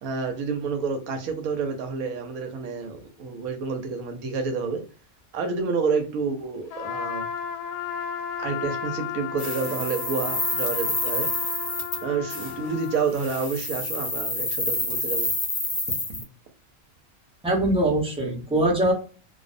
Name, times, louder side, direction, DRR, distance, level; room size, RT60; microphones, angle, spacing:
voice 1, 0.0-4.8 5.3-7.2 8.4-11.3 12.0-15.3 16.1-16.2, right 5 dB, 80° right, 1.0 m, -29 dB
Trumpet, 6.7-13.1, left 7 dB, 70° left, 0.9 m, -34 dB
sound 1, 9.4-12.0 12.3-12.5 13.1-16.2, left 2 dB, 35° left, 0.6 m, -28 dB
voice 2, 17.4-18.9, right 1 dB, 5° right, 0.5 m, -22 dB
2.5 x 2.0 x 2.4 m
omnidirectional pair, 1.5 m